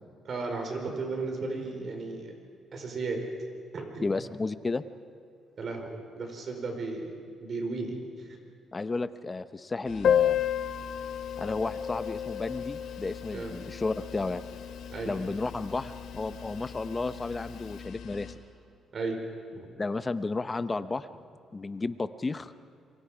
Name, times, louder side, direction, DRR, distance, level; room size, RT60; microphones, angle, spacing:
voice 1, 0.3-2.3 2.7-3.2 3.7-4.0 5.6-8.3 13.3-13.5 14.9-15.1 18.9-19.2 19.5-19.7, right 3 dB, 50° right, 3 dB, 4.9 m, -35 dB
voice 2, 4.0-4.8 8.7-10.4 11.4-14.4 15.1-18.3 19.8-21.1 21.5-22.5, left 3 dB, 25° left, 12 dB, 0.9 m, -32 dB
sound 1, 9.8-18.3, left 6 dB, 85° left, 2.4 m, -44 dB
Piano, 10.0-15.4 15.7-15.8 16.0-16.1 16.5-16.6 17.3-17.5, left 9 dB, 65° left, 0.4 m, -31 dB
27.0 x 24.0 x 5.1 m, 2.4 s
cardioid pair, 90°, 0 cm